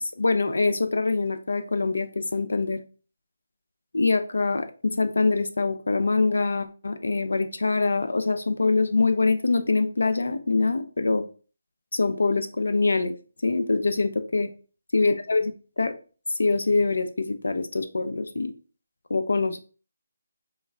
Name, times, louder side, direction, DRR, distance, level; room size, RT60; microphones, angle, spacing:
voice 1, 0.2-2.8 3.9-11.2 11.9-13.2 13.4-14.5 14.9-15.9 16.4-18.5 19.1-19.6, left 3 dB, 75° left, 10 dB, 0.6 m, -24 dB
5.3 x 2.3 x 3.5 m, 0.37 s
figure-of-eight pair, 155°, 0 cm